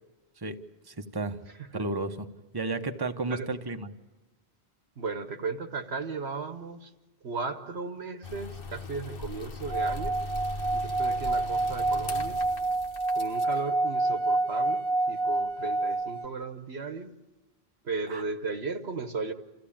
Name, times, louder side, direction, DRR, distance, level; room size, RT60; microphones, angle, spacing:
voice 1, 0.9-1.4 1.7-2.3 2.5-3.9 18.1-18.2, right 3 dB, 25° right, 7 dB, 1.0 m, -32 dB
voice 2, 5.0-6.9 7.2-10.1 10.7-12.4 13.1-14.8 15.1-17.1 17.8-19.3, right 4 dB, 75° right, 7 dB, 1.4 m, -35 dB
sound 1, 8.2-13.6, left 3 dB, 60° left, 1.2 m, -39 dB
Singing / Glass, 9.6-16.3, right 2 dB, 60° right, 1.2 m, -28 dB
28.0 x 15.0 x 8.7 m, 1.1 s
omnidirectional pair, 1.1 m